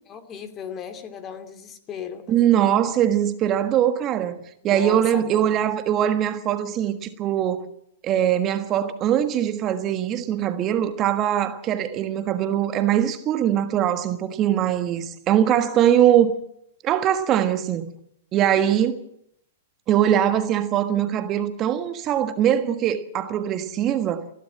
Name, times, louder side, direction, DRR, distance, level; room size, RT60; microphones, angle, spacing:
voice 1, 0.1-2.2 4.7-5.4 18.6-18.8, left 8 dB, 30° left, 2.7 m, -36 dB
voice 2, 2.3-4.4 4.6-7.6 8.0-16.3 16.8-17.9 18.3-19.0 19.9-24.3, right 10 dB, 30° right, 1.6 m, -22 dB
29.0 x 12.0 x 7.6 m
hypercardioid pair, 110°, 0 cm